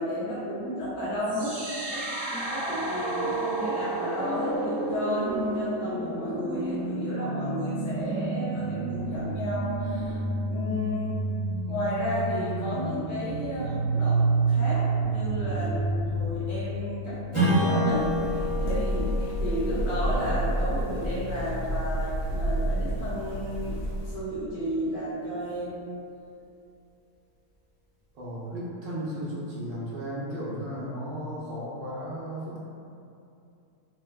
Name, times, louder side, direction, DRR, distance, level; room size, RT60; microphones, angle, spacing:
voice 1, 0.0-1.6 1.9-10.2 10.5-11.2 11.7-23.7 24.0-25.8, equal, 85° left, -11 dB, 1.5 m, -32 dB
sound 1, 1.2-17.2, right 3 dB, 60° right, 1.3 m, -30 dB
Strum, 17.3-22.3, equal, 10° left, 0.8 m, -29 dB
sound 2, 17.9-24.1, right 1 dB, 60° left, 1.1 m, -30 dB
voice 2, 28.1-32.6, equal, 90° right, -7 dB, 1.4 m, -35 dB
4.3 x 2.1 x 2.2 m, 2.6 s
omnidirectional pair, 1.9 m